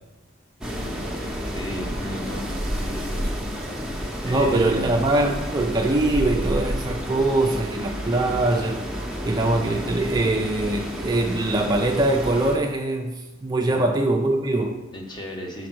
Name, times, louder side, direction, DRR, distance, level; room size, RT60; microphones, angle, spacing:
sound 1, 0.6-12.6, equal, ahead, 0.8 m, -30 dB
voice 1, 1.5-3.3 4.2-5.0 13.6-14.1 14.9-15.7, equal, 20° left, 1 dB, 1.0 m, -35 dB
voice 2, 4.2-8.8 9.2-14.8, right 2 dB, 20° right, 1 dB, 0.4 m, -22 dB
5.1 x 4.9 x 6.1 m, 1.0 s
head